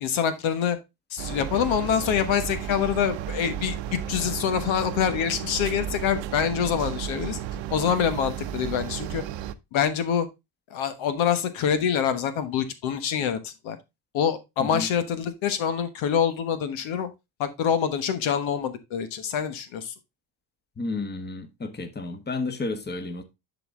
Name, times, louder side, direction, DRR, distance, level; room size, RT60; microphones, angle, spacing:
voice 1, 0.0-0.8 1.1-3.8 4.1-7.4 7.7-9.2 9.7-10.3 10.7-13.8 14.1-17.1 17.4-19.9, left 8 dB, 70° left, 1.3 m, -25 dB
sound 1, 1.2-9.5, right 10 dB, 65° right, 0.9 m, -33 dB
voice 2, 20.8-23.2, left 3 dB, 20° left, 1.4 m, -32 dB
10.5 x 4.1 x 3.7 m
supercardioid pair, 90°, 49 cm